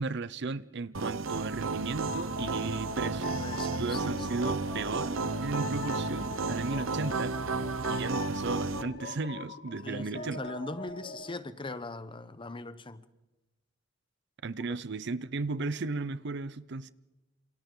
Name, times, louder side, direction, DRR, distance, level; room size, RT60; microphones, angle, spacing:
voice 1, 0.0-3.4 3.8-7.6 7.9-10.4 14.4-16.9, right 3 dB, 60° right, 0.7 m, -35 dB
sound 1, 0.9-8.8, right 3 dB, 90° right, 0.9 m, -33 dB
sound 2, 2.1-11.3, left 5 dB, 50° left, 1.2 m, -43 dB
voice 2, 3.4-4.2 9.8-13.0 14.7-14.8, left 2 dB, 25° left, 0.9 m, -40 dB
28.0 x 27.5 x 3.9 m
head